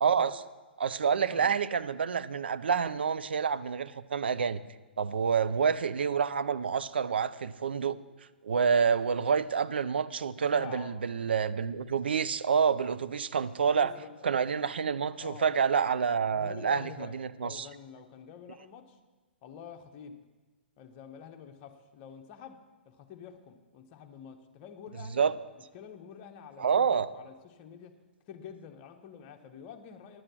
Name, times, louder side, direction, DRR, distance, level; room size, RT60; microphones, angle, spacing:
voice 1, 0.0-0.3 0.8-4.6 5.0-8.0 8.4-13.9 14.2-17.7 25.2-25.3 26.6-27.1, right 6 dB, 65° right, 13 dB, 0.5 m, -28 dB
voice 2, 1.1-1.5 10.5-11.0 12.8-13.0 13.8-14.3 15.1-15.5 16.3-19.0 19.4-20.2 20.8-25.2 25.7-27.9 28.3-30.2, left 8 dB, 35° left, 5 dB, 1.0 m, -48 dB
11.0 x 7.7 x 6.1 m, 1.2 s
figure-of-eight pair, 115°, 6 cm